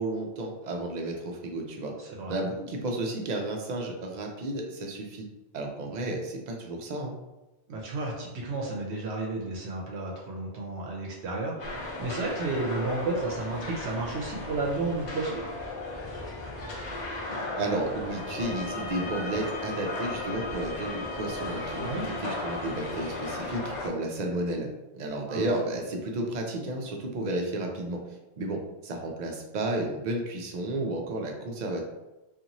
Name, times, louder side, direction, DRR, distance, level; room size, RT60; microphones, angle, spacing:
voice 1, 0.0-1.9 2.3-5.2 5.5-7.1 17.6-21.9 22.2-24.7 24.9-28.0 28.4-31.8, right 2 dB, 55° right, 2 dB, 0.5 m, -32 dB
voice 2, 2.0-2.3 7.7-15.4 21.8-22.1 25.3-25.5, right 3 dB, 75° right, -2 dB, 0.8 m, -32 dB
sound 1, 11.6-23.9, left 2 dB, 45° left, 0.7 m, -36 dB
sound 2, 18.1-23.4, left 3 dB, 75° left, 1.0 m, -41 dB
2.9 x 2.4 x 2.6 m, 1.0 s
omnidirectional pair, 1.1 m